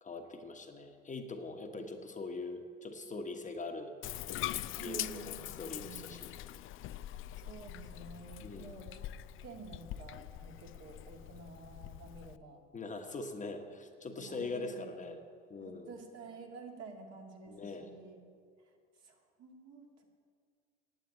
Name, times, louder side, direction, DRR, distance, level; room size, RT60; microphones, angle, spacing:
voice 1, 0.0-3.9 4.7-6.4 8.4-8.7 12.7-15.2 15.5-15.9 17.5-17.9, left 3 dB, 25° left, 4 dB, 1.2 m, -42 dB
Bathtub (filling or washing), 4.0-12.4, left 13 dB, 40° left, 0.4 m, -43 dB
voice 2, 4.7-6.2 7.4-9.0 9.4-12.6 14.1-15.2 15.6-18.2 19.0-20.0, right 4 dB, 55° right, 0 dB, 2.4 m, -50 dB
9.6 x 8.4 x 8.5 m, 2.1 s
hypercardioid pair, 80°, 31 cm